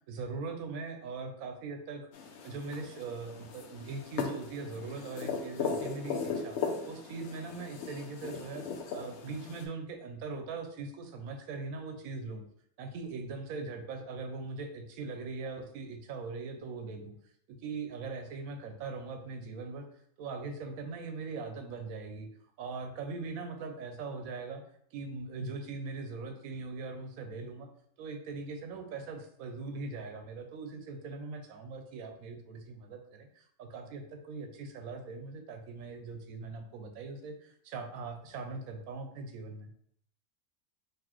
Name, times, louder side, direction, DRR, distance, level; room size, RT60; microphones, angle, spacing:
voice 1, 0.1-2.0 2.4-6.6 6.9-8.6 8.9-12.4 12.8-17.2 17.5-19.9 20.2-22.3 22.6-24.6 24.9-27.7 28.0-39.7, right 4 dB, 90° right, 6 dB, 1.1 m, -41 dB
sound 1, 2.1-9.6, left 5 dB, 65° left, 0.8 m, -38 dB
4.0 x 2.8 x 2.9 m, 0.67 s
omnidirectional pair, 1.4 m